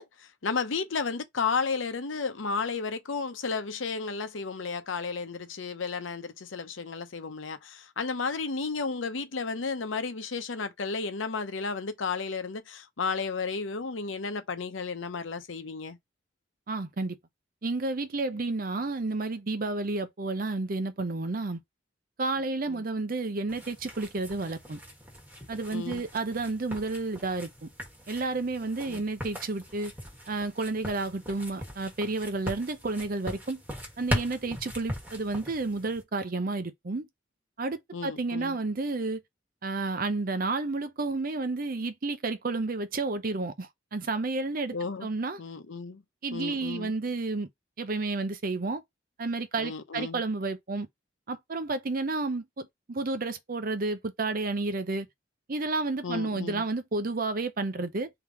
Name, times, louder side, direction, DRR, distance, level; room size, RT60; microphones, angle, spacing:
voice 1, 0.0-16.0 22.7-22.8 25.7-26.0 28.9-29.0 37.9-38.6 44.7-45.1 45.4-46.0 46.3-46.9 49.6-50.2 56.0-56.6, left 4 dB, 85° left, 0.8 m, -33 dB
voice 2, 16.7-17.2 17.6-21.6 22.2-24.8 25.5-27.7 28.1-29.9 30.3-33.6 34.0-37.1 37.6-39.2 39.6-44.7 45.0-45.4 46.2-47.5 47.8-48.8 49.2-50.9 51.3-55.1 55.5-58.1, right 3 dB, 50° right, 0.6 m, -31 dB
sound 1, 23.5-36.0, equal, 10° right, 1.4 m, -39 dB
3.5 x 2.9 x 4.7 m
head